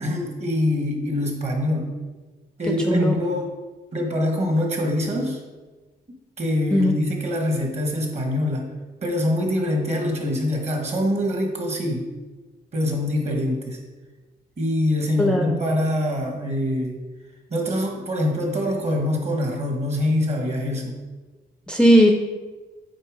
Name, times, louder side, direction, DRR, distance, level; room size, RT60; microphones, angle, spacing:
voice 1, 0.0-1.9 2.6-3.5 3.9-5.4 6.4-8.7 9.0-12.1 12.7-13.8 14.6-17.0 17.5-21.0, left 1 dB, 40° right, 2 dB, 1.4 m, -24 dB
voice 2, 2.9-3.2 6.7-6.9 15.2-15.6 21.7-22.1, equal, 5° left, 3 dB, 0.4 m, -17 dB
8.4 x 3.4 x 5.0 m, 1.2 s
wide cardioid pair, 150°, 17 cm